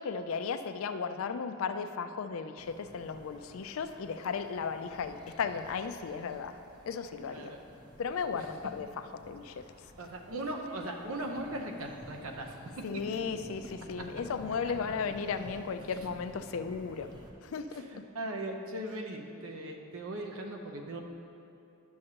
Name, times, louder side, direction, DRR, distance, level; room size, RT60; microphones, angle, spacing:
voice 1, 0.0-6.6 6.9-7.5 8.0-9.6 12.8-17.1 17.4-18.0, left 5 dB, 70° left, 10 dB, 0.4 m, -35 dB
sound 1, 2.6-17.3, equal, 20° right, 0.6 m, -52 dB
voice 2, 7.2-7.6 8.3-8.5 10.0-12.5 17.7-21.0, right 1 dB, 70° right, 2 dB, 0.8 m, -39 dB
11.0 x 6.5 x 2.9 m, 2.7 s
head